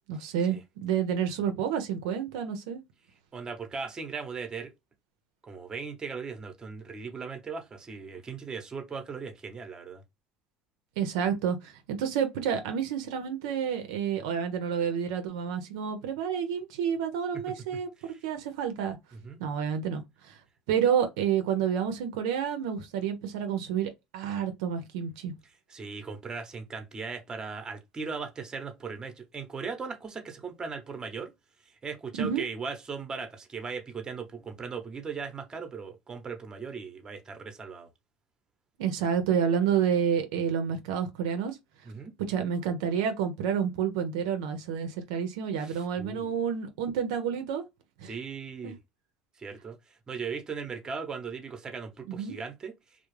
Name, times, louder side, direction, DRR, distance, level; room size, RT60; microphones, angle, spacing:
voice 1, 0.1-2.8 11.0-19.0 19.4-20.4 20.7-25.3 32.2-32.4 38.8-41.6 42.3-47.6 48.0-48.1 48.6-48.7 52.1-52.4, right 8 dB, 85° right, 0.5 m, -29 dB
voice 2, 3.3-4.7 5.4-10.0 18.0-18.2 19.1-19.4 25.7-31.3 31.7-37.9 41.8-42.1 45.6-46.3 48.0-48.8 49.4-52.7, right 5 dB, 25° right, 0.7 m, -38 dB
2.3 x 2.0 x 3.1 m
supercardioid pair, 95°, 3 cm